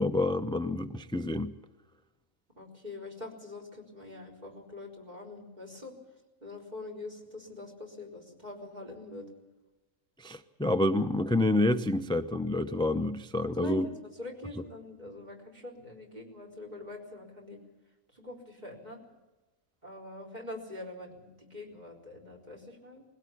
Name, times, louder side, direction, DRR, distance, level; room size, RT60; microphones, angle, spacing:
voice 1, 0.0-1.5 10.2-13.9, left 1 dB, 5° left, 10 dB, 0.4 m, -28 dB
voice 2, 2.6-5.9 6.4-9.3 13.5-17.6 18.1-19.0 19.8-23.0, left 2 dB, 30° right, 2 dB, 4.4 m, -44 dB
21.0 x 17.0 x 8.4 m, 1.1 s
omnidirectional pair, 1.4 m